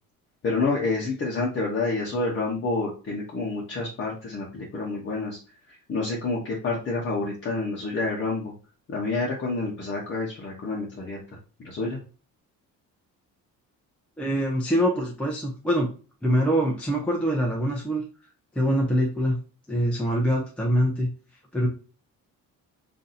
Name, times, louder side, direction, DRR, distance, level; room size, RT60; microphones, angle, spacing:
voice 1, 0.4-5.4 5.7-8.5 8.9-11.2 11.6-12.0, left 3 dB, 35° left, -4 dB, 0.8 m, -28 dB
voice 2, 14.2-15.9 16.2-18.0 18.6-19.4 19.7-21.1 21.5-21.7, equal, 5° left, -2 dB, 0.4 m, -24 dB
2.6 x 2.6 x 4.0 m, 0.37 s
cardioid pair, 160°, 34 cm